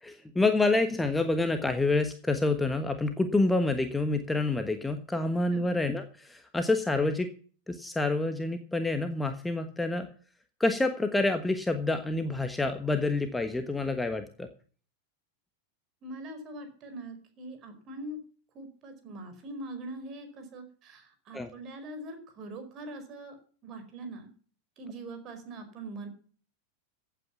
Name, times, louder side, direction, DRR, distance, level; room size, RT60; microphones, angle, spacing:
voice 1, 0.0-7.3 7.7-10.1 10.6-14.5 21.3-21.5, left 2 dB, 5° left, 8 dB, 1.3 m, -28 dB
voice 2, 16.0-18.2 18.5-23.4 23.6-24.3 24.8-26.1, right 2 dB, 35° right, 8 dB, 4.7 m, -42 dB
15.5 x 9.0 x 5.9 m, 0.42 s
figure-of-eight pair, 90°, 0 cm